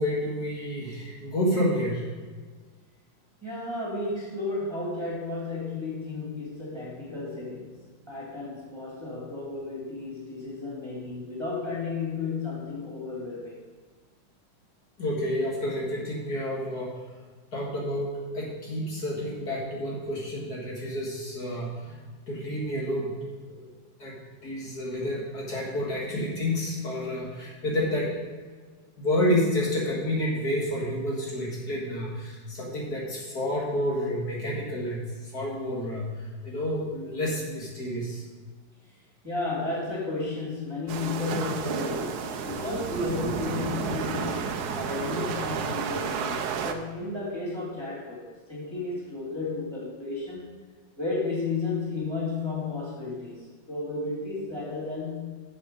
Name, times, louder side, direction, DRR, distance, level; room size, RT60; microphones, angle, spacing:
voice 1, 0.0-2.1 15.0-16.9 17.5-23.1 23.5-23.7 24.0-24.2 24.4-28.1 29.0-38.2, left 1 dB, 55° left, -4 dB, 2.2 m, -29 dB
voice 2, 3.4-13.6 39.2-50.6 51.0-55.4, left 3 dB, 15° right, -6 dB, 2.1 m, -33 dB
sound 1, 40.9-46.7, right 6 dB, 70° right, 1.1 m, -31 dB
7.7 x 7.1 x 5.1 m, 1.5 s
omnidirectional pair, 2.1 m